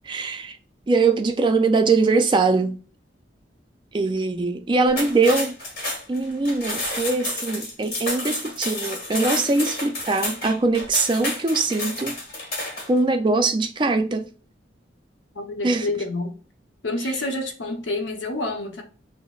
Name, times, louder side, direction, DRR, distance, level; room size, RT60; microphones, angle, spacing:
voice 1, 0.1-0.6 0.9-2.8 3.9-5.6 6.1-12.2 12.9-14.3 15.6-15.9 17.0-17.2, right 3 dB, 25° right, 0.3 m, -22 dB
sound 1, 4.9-13.0, left 2 dB, 55° left, 1.3 m, -30 dB
voice 2, 15.3-16.3 16.8-18.8, left 2 dB, 85° left, 0.8 m, -28 dB
5.9 x 2.0 x 2.3 m
head